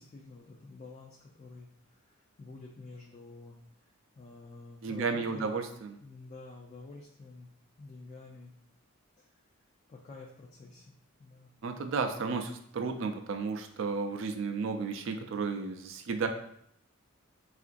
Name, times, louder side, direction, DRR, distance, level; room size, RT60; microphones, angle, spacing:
voice 1, 0.0-3.6 4.2-5.5 6.0-7.5 7.8-8.5 9.2-9.3 9.9-10.9 11.2-11.5, left 3 dB, 30° left, -2 dB, 0.3 m, -49 dB
voice 2, 4.8-6.0 11.6-16.3, right 4 dB, 60° right, 6 dB, 0.4 m, -33 dB
3.7 x 2.4 x 2.5 m, 0.69 s
head